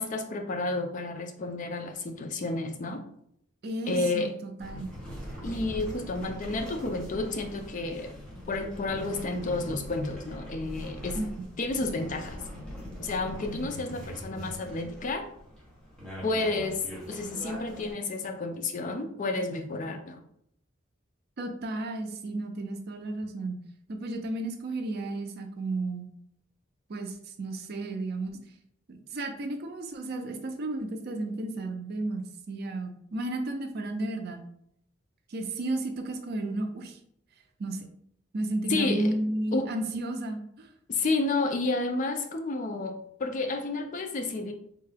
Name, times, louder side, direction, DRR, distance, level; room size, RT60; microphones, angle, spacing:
voice 1, 0.0-3.0 3.9-4.3 5.4-8.1 8.5-11.2 11.6-12.4 13.0-15.3 16.2-20.2 38.7-39.1 39.5-39.7 40.9-44.5, left 3 dB, 40° left, 5 dB, 0.4 m, -31 dB
voice 2, 3.6-4.9 11.1-11.3 21.4-23.6 23.9-26.1 26.9-28.4 28.9-34.4 35.3-37.0 37.6-37.9 38.3-40.7, right 2 dB, 55° right, 5 dB, 0.4 m, -33 dB
sound 1, 4.6-17.9, equal, 5° left, 1.0 m, -42 dB
3.6 x 2.2 x 3.3 m, 0.70 s
head